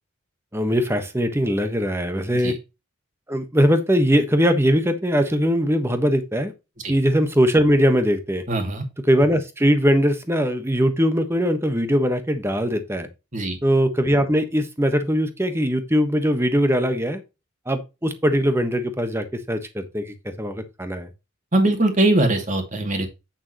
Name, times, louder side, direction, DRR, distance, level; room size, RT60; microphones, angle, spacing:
voice 1, 0.5-2.6 3.3-6.5 6.9-8.4 9.1-13.1 13.6-17.2 17.7-21.1, equal, 10° right, 8 dB, 1.3 m, -21 dB
voice 2, 8.5-8.8 13.3-13.6 21.5-23.1, right 1 dB, 35° right, 4 dB, 2.5 m, -21 dB
9.1 x 7.0 x 3.0 m, 0.26 s
head